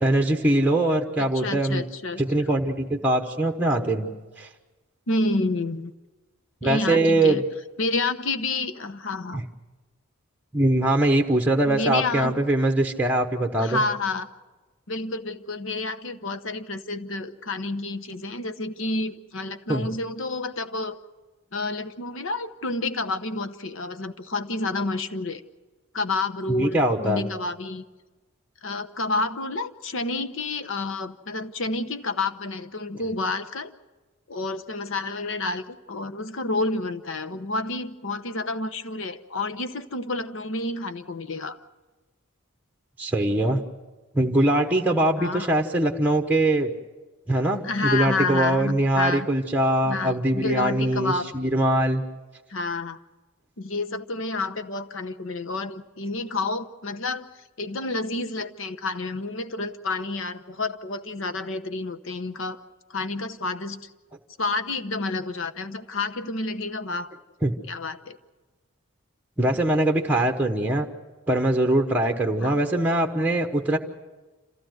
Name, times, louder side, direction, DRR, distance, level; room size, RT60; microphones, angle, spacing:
voice 1, 0.0-1.8 2.2-4.5 6.6-7.4 9.3-9.4 10.5-13.8 19.7-19.9 26.5-27.3 43.0-43.6 44.1-46.7 47.3-52.0 67.4-67.5 69.4-70.9 71.3-73.8, right 1 dB, 10° right, 4 dB, 1.0 m, -22 dB
voice 2, 1.2-2.5 5.1-5.9 6.6-7.4 7.8-9.4 11.6-12.3 13.6-14.3 14.9-21.0 21.5-25.4 25.9-27.8 28.6-33.7 34.3-41.6 45.2-45.5 47.6-49.3 49.8-51.3 52.5-53.0 53.6-57.3 57.6-62.6 62.9-63.9 64.4-67.1 67.7-68.2 72.4-72.5, left 2 dB, 65° left, 11 dB, 0.9 m, -29 dB
27.0 x 15.5 x 7.8 m, 1.2 s
head